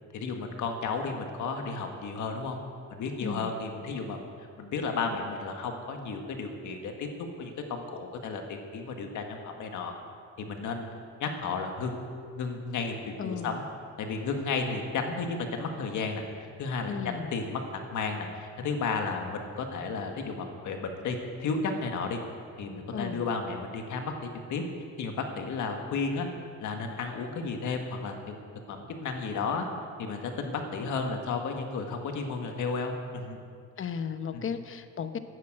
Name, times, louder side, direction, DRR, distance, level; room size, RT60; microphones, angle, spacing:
voice 1, 0.1-2.6 2.9-4.3 4.6-7.1 7.4-9.9 10.4-12.0 12.4-12.9 13.2-13.6 14.0-17.6 17.9-22.2 22.6-24.6 25.0-26.3 26.6-28.4 28.7-29.7 30.0-33.4 33.8-33.9 34.3-34.6, left 4 dB, 75° left, 4 dB, 1.8 m, -33 dB
voice 2, 3.2-3.6 13.2-13.6 16.9-17.3 22.9-23.2 33.8-35.2, left 6 dB, 45° left, 10 dB, 0.9 m, -35 dB
11.5 x 9.8 x 7.8 m, 2.2 s
cardioid pair, 90°, 30 cm